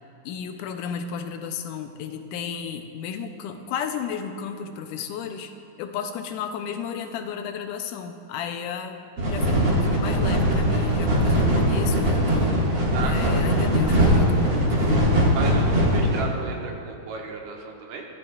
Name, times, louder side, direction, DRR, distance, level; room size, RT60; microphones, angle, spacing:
voice 1, 0.3-5.5 5.8-9.0 9.3-12.6 13.0-14.9, left 7 dB, 90° left, 6 dB, 2.3 m, -33 dB
sound 1, 9.2-16.2, equal, 40° right, 2.3 m, -21 dB
voice 2, 12.9-13.4 15.3-18.0, right 4 dB, 75° right, 0 dB, 2.5 m, -33 dB
15.5 x 14.0 x 2.4 m, 2.7 s
omnidirectional pair, 3.6 m